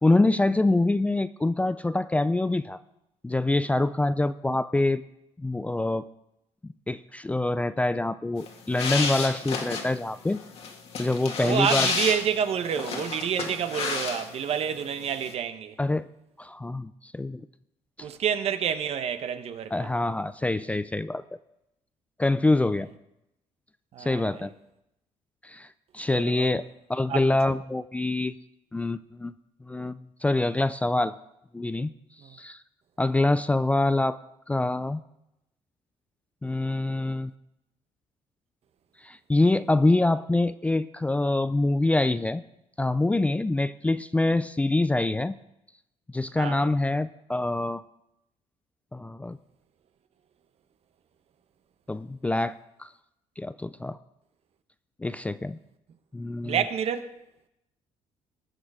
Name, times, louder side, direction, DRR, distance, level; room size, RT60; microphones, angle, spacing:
voice 1, 0.0-2.8 3.2-5.0 5.4-6.0 6.9-10.4 11.0-11.9 15.8-16.1 16.4-17.4 18.0-18.1 19.7-21.2 22.2-22.9 24.0-24.5 25.4-25.7 25.9-26.6 26.9-28.3 28.7-29.3 29.7-31.1 31.5-31.9 32.3-32.6 33.0-34.2 34.5-35.0 36.4-37.3 39.0-42.4 42.8-45.3 46.1-47.8 48.9-49.4 51.9-52.9 53.4-54.0 55.0-55.6 56.1-56.6, left 2 dB, 10° left, 0.4 m, -25 dB
sound 1, 8.4-14.6 14.8-15.3, left 5 dB, 55° left, 1.9 m, -31 dB
voice 2, 11.4-15.8 18.0-19.9 23.9-24.5 26.2-26.6 27.1-27.2 32.2-32.4 46.4-46.6 56.4-57.1, right 8 dB, 55° right, 1.0 m, -28 dB
19.5 x 6.6 x 4.9 m
cardioid pair, 110°, 12 cm